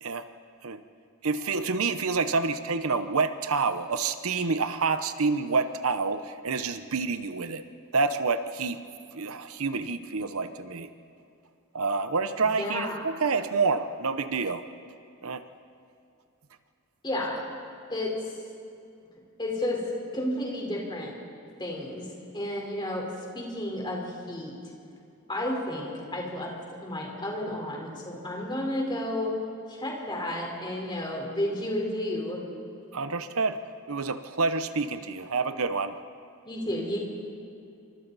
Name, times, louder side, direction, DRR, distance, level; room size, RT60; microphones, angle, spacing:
voice 1, 1.2-7.6 7.9-8.8 9.1-10.9 11.7-14.6 15.2-15.4 32.9-36.0, right 4 dB, 75° right, 10 dB, 0.9 m, -28 dB
voice 2, 12.6-13.0 17.0-17.4 17.9-18.1 19.4-19.8 20.1-21.1 21.6-22.1 22.3-23.1 23.3-24.5 25.3-26.5 26.8-29.3 29.7-32.4 36.4-37.0, left 1 dB, 20° left, -1 dB, 4.2 m, -31 dB
28.5 x 25.5 x 4.1 m, 2.5 s
head